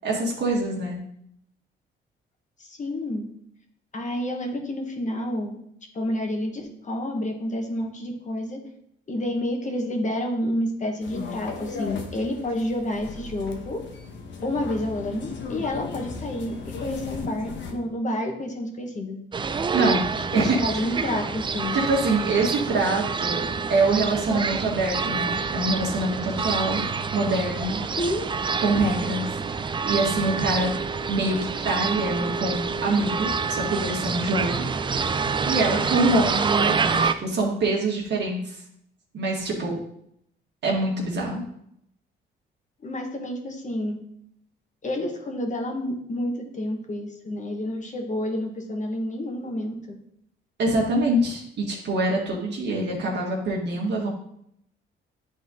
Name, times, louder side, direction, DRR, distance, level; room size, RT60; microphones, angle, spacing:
voice 1, 0.0-1.0 19.7-20.1 20.3-20.6 21.7-26.8 27.1-27.8 28.6-29.6 29.9-30.7 31.1-34.7 35.4-38.6 39.1-39.8 40.6-41.4 50.6-54.1, right 2 dB, 60° right, -2 dB, 1.5 m, -25 dB
voice 2, 2.6-3.3 3.9-5.6 5.9-8.6 9.1-13.8 14.4-19.2 20.3-21.7 28.0-28.3 42.8-44.0 44.8-49.7, left 1 dB, 40° left, 3 dB, 1.4 m, -29 dB
sound 1, 11.0-17.7, left 4 dB, 65° left, 1.1 m, -36 dB
sound 2, 19.3-37.1, right 5 dB, 25° right, 0.4 m, -27 dB
9.7 x 3.8 x 3.7 m, 0.73 s
cardioid pair, 90°, 20 cm